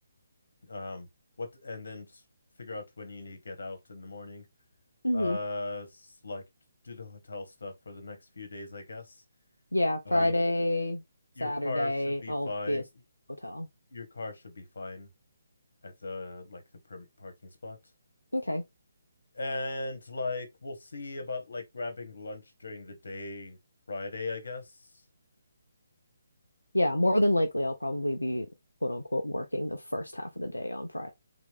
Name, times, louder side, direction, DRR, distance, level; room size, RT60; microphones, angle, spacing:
voice 1, 0.6-1.1 1.4-2.2 2.6-4.5 5.1-6.4 6.8-9.2 10.0-10.3 11.3-12.9 13.9-15.1 15.8-16.6 16.9-17.8 19.3-23.6 23.9-24.7, left 2 dB, 70° left, 1.4 m, -38 dB
voice 2, 5.0-5.4 9.7-11.0 11.4-12.8 13.4-13.7 18.3-18.6 26.7-28.5 28.8-31.1, left 1 dB, 90° left, 0.6 m, -28 dB
3.9 x 3.1 x 3.5 m
figure-of-eight pair, 140°, 0 cm